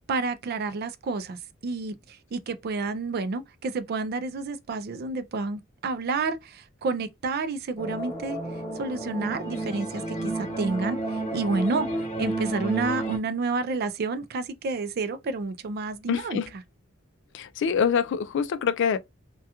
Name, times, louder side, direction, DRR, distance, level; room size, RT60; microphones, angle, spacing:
voice 1, 0.1-8.4 8.8-11.9 12.2-16.6, right 3 dB, 50° right, 0.4 m, -30 dB
sound 1, 7.8-13.2, right 2 dB, 35° left, 0.8 m, -31 dB
voice 2, 16.1-16.5 17.3-19.0, left 7 dB, 60° left, 0.3 m, -25 dB
2.3 x 2.2 x 2.8 m
head